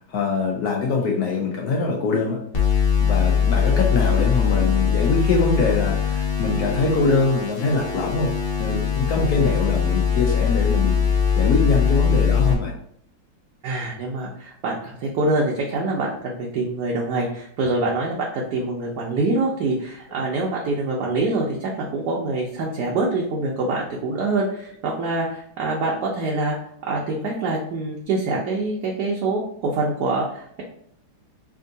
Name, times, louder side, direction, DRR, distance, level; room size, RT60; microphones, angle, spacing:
voice 1, 0.1-8.3 8.6-11.0 11.4-12.7, left 4 dB, 70° left, 0 dB, 1.0 m, -23 dB
sound 1, 2.5-12.5, left 7 dB, 50° left, 0.7 m, -21 dB
voice 2, 13.6-26.5 26.9-30.6, right 2 dB, 65° right, -2 dB, 1.1 m, -25 dB
3.5 x 2.7 x 3.8 m, 0.66 s
omnidirectional pair, 2.1 m